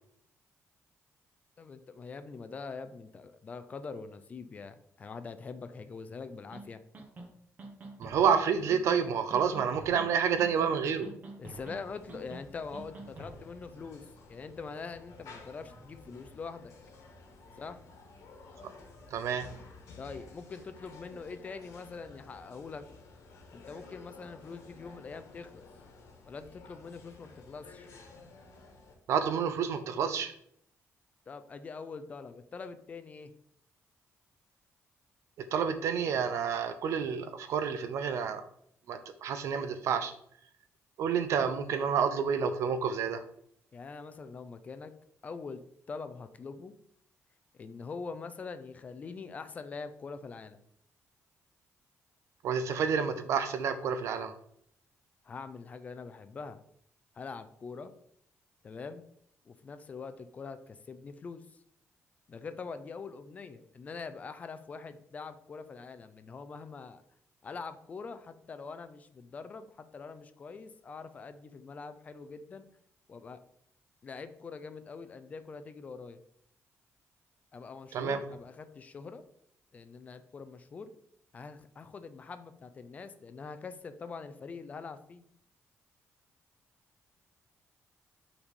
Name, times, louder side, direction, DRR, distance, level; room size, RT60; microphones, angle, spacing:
voice 1, 1.6-6.8 11.4-14.0 14.3-16.7 17.6-17.8 20.0-22.8 23.5-25.6 26.3-27.9 31.3-33.3 43.7-44.9 45.2-45.6 45.9-46.7 47.5-50.6 55.2-56.6 57.1-57.9 58.6-59.0 59.5-61.4 62.3-67.0 67.4-72.7 73.1-73.4 74.0-76.2 77.5-79.2 79.7-80.9 81.3-85.2, left 4 dB, 30° left, 11 dB, 0.4 m, -44 dB
sound 1, 6.5-6.6 6.9-7.3 7.6-8.3 8.7-9.0 9.3-10.1 10.4-10.8 11.0-11.8 12.1-12.4 12.7-13.4, right 2 dB, 30° right, 1.0 m, -46 dB
voice 2, 8.0-11.1 19.1-19.5 29.1-30.3 35.5-38.5 38.9-40.1 41.0-43.2 52.4-54.3 77.9-78.2, right 7 dB, 65° right, 9 dB, 0.7 m, -29 dB
sound 2, 11.5-29.0, left 3 dB, 80° left, 1.5 m, -53 dB
5.7 x 4.1 x 5.3 m, 0.69 s
cardioid pair, 175°, 5 cm